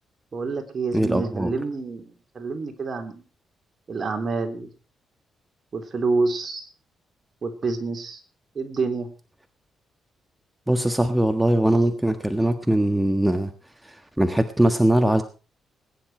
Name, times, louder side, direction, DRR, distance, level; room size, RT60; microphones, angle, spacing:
voice 1, 0.3-3.2 3.9-4.7 5.7-6.7 7.4-8.2 8.6-9.1, right 3 dB, 45° right, 5 dB, 3.6 m, -27 dB
voice 2, 0.9-1.5 10.7-13.5 13.8-15.2, right 1 dB, 5° right, 8 dB, 1.5 m, -21 dB
20.5 x 10.0 x 4.5 m, 0.34 s
cardioid pair, 80°, 0 cm